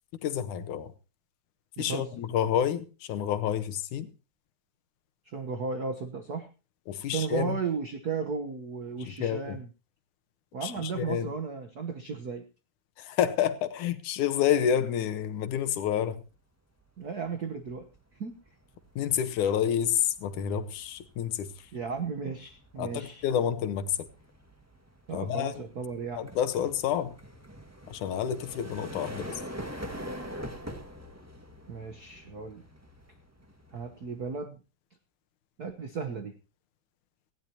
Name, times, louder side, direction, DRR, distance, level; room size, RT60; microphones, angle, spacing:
voice 1, 0.2-0.9 1.8-4.1 6.9-7.6 9.2-9.6 10.6-11.3 13.0-16.2 19.0-21.5 22.8-24.1 25.1-25.5 26.2-27.2 27.9-29.4, left 9 dB, 80° left, 2.6 m, -29 dB
voice 2, 1.8-2.2 5.2-6.5 7.1-9.7 10.5-12.4 17.0-17.9 18.2-18.4 21.7-23.2 25.1-26.3 31.7-32.6 33.7-34.6 35.6-36.3, right 5 dB, 80° right, 0.8 m, -35 dB
sound 1, 17.0-17.3 17.6-34.4, equal, 10° right, 1.1 m, -45 dB
18.5 x 15.5 x 2.9 m
omnidirectional pair, 3.5 m